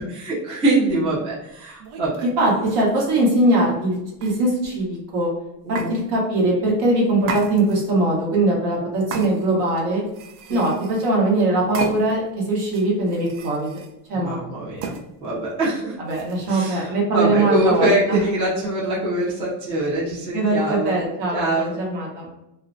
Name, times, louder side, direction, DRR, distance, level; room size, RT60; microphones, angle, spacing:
voice 1, 0.0-2.2 5.6-6.0 10.5-10.6 14.1-14.9 15.2-16.0 16.5-21.0 21.3-21.8, right 1 dB, 15° right, -7 dB, 0.4 m, -23 dB
sound 1, 0.9-1.0 1.8-3.4 4.2-4.8 5.7-5.9 7.2-8.0 9.1-9.7 10.1-11.2 11.7-12.3 12.7-13.9 14.8-15.0 16.1-16.5, right 4 dB, 80° right, 0.6 m, -34 dB
voice 2, 2.4-5.3 5.7-10.0 10.5-13.8 14.1-14.4 16.0-18.2 20.3-22.3, right 2 dB, 60° right, -2 dB, 1.0 m, -21 dB
2.4 x 2.1 x 2.5 m, 0.85 s
cardioid pair, 145°, 48 cm